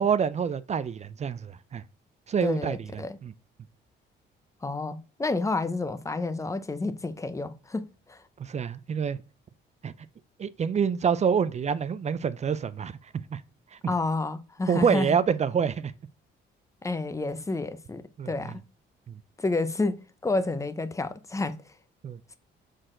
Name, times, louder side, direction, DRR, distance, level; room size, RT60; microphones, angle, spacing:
voice 1, 0.0-1.8 2.3-3.3 8.4-9.2 9.8-9.9 10.4-13.4 14.7-15.9 18.2-18.3 19.1-19.2 22.0-22.2, right 7 dB, 35° right, 0.4 m, -27 dB
voice 2, 2.4-3.2 4.6-8.2 13.9-15.2 16.8-18.6 19.4-21.5, left 3 dB, 15° left, 0.6 m, -30 dB
6.3 x 4.3 x 3.8 m
cardioid pair, 90°, 20 cm